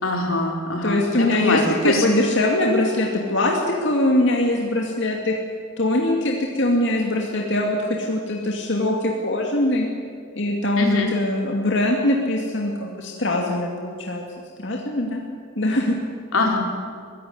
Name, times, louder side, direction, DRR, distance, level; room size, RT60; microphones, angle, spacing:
voice 1, 0.0-2.1 10.8-11.1 16.3-16.6, left 2 dB, 90° left, 1 dB, 4.3 m, -23 dB
voice 2, 0.8-5.3 5.8-9.9 10.3-14.2 14.6-15.2 15.6-16.0, left 1 dB, 60° left, 0 dB, 2.5 m, -22 dB
24.0 x 16.0 x 9.6 m, 2.1 s
head